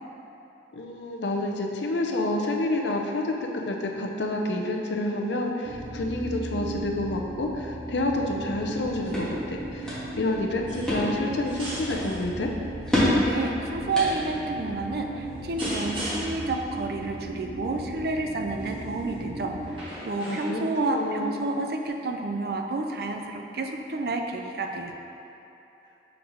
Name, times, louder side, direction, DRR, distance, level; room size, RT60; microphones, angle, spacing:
voice 1, 0.7-12.5 20.3-20.6 20.9-21.3, left 2 dB, 85° left, 1 dB, 0.6 m, -29 dB
sound 1, 5.6-19.8, right 2 dB, 85° right, 0.8 m, -37 dB
sound 2, 8.6-16.2, equal, 5° left, 1.5 m, -31 dB
sound 3, 10.7-11.1 11.4-12.2 12.9-13.3 14.1-14.4 15.6-16.5 18.6-18.9 19.7-20.8 21.8-21.9, equal, 30° right, 1.4 m, -38 dB
voice 2, 13.2-24.9, right 2 dB, 60° right, 3 dB, 0.4 m, -30 dB
6.4 x 5.1 x 3.1 m, 2.9 s
head